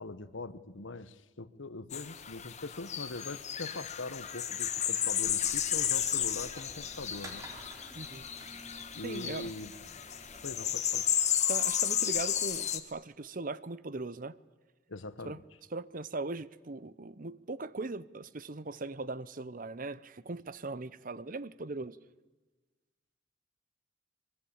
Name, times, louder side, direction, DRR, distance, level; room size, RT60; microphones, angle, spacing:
voice 1, 0.0-7.4 8.9-9.7 10.4-11.1 14.9-15.4, left 2 dB, 80° left, 1.2 m, -42 dB
sound 1, 1.9-12.8, left 9 dB, 35° left, 1.4 m, -33 dB
sound 2, 5.2-10.7, right 1 dB, 15° right, 4.4 m, -52 dB
voice 2, 9.0-9.5 11.5-14.4 15.2-15.4 15.7-22.0, right 3 dB, 45° right, 0.7 m, -39 dB
24.5 x 22.5 x 8.8 m
head